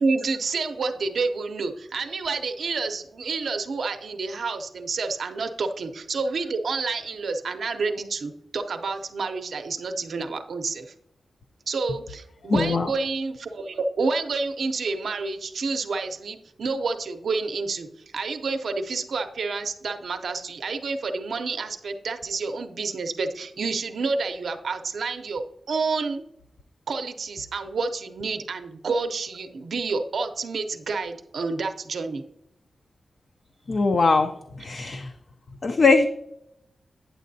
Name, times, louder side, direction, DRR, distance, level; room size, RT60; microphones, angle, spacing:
voice 1, 0.0-10.9 11.7-17.9 18.1-26.2 26.9-32.2, right 4 dB, 70° right, 6 dB, 0.5 m, -29 dB
voice 2, 12.5-12.9 33.7-35.1 35.6-36.1, left 4 dB, 50° left, 7 dB, 0.4 m, -21 dB
9.0 x 7.4 x 2.7 m, 0.80 s
wide cardioid pair, 145°, 0 cm